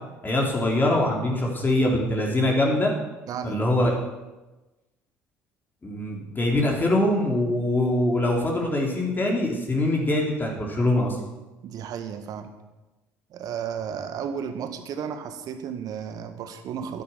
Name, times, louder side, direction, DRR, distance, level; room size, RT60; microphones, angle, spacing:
voice 1, 0.2-2.9 3.4-3.9 5.8-11.2, left 1 dB, 25° left, -1 dB, 3.8 m, -23 dB
voice 2, 3.3-3.7 11.6-12.5 13.3-17.0, right 7 dB, 55° right, 8 dB, 1.7 m, -33 dB
11.5 x 11.0 x 8.4 m, 1.1 s
hypercardioid pair, 55°, 8 cm